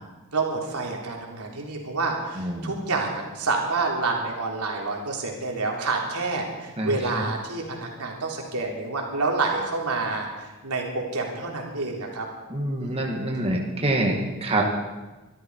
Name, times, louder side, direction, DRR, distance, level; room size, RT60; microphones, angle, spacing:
voice 1, 0.3-12.3 12.8-13.1, right 3 dB, 90° right, 0 dB, 3.4 m, -28 dB
voice 2, 2.4-2.7 6.8-7.2 12.5-14.6, right 1 dB, 25° right, 0 dB, 2.0 m, -26 dB
23.5 x 12.5 x 4.8 m, 1.2 s
head